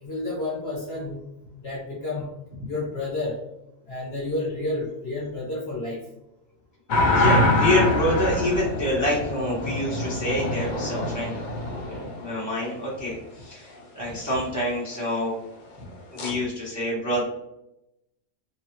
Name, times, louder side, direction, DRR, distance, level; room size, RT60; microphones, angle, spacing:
voice 1, 0.0-1.2 1.6-2.3 2.7-3.4 3.9-6.0, left 2 dB, 50° left, -5 dB, 1.0 m, -30 dB
sound 1, 6.9-12.7 16.2-16.3, left 2 dB, 80° left, 0.4 m, -25 dB
voice 2, 7.0-15.3 16.1-17.2, left 1 dB, 15° right, -7 dB, 0.8 m, -27 dB
3.3 x 2.3 x 2.9 m, 0.88 s
omnidirectional pair, 1.6 m